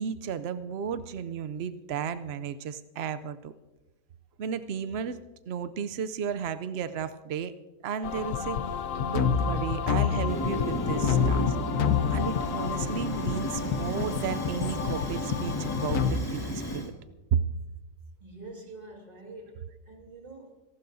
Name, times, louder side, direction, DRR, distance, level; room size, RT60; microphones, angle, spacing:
voice 1, 0.0-3.5 4.4-5.2 5.5-7.5 7.8-8.6 9.1-11.6 12.1-16.8 17.3-17.4, right 7 dB, 85° right, 12 dB, 0.5 m, -33 dB
sound 1, 8.0-16.1, left 7 dB, 60° left, 1.1 m, -28 dB
Fire, 10.3-16.9, equal, 15° left, 1.4 m, -34 dB
voice 2, 18.2-20.7, right 2 dB, 25° right, 1 dB, 2.0 m, -46 dB
26.0 x 12.5 x 2.7 m, 1.1 s
omnidirectional pair, 1.7 m